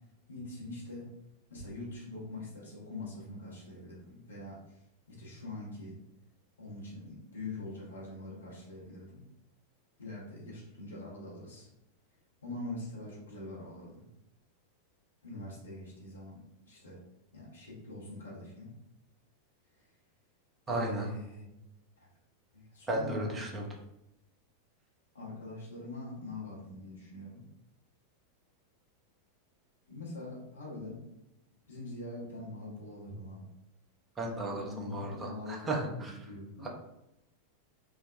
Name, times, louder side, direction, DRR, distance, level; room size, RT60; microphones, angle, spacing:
voice 1, 0.3-1.1 1.5-4.6 5.1-6.0 6.6-9.2 10.0-11.7 12.4-14.0 15.2-17.0 17.3-18.7 20.7-21.5 22.5-23.3 25.1-27.4 29.9-31.0 31.7-33.4 34.5-36.7, left 2 dB, 70° left, -5 dB, 0.9 m, -43 dB
voice 2, 20.7-21.1 22.9-23.7 34.2-36.1 36.6-36.7, right 2 dB, 20° right, -1 dB, 0.6 m, -34 dB
3.3 x 2.1 x 2.3 m, 0.86 s
figure-of-eight pair, 90°, 0 cm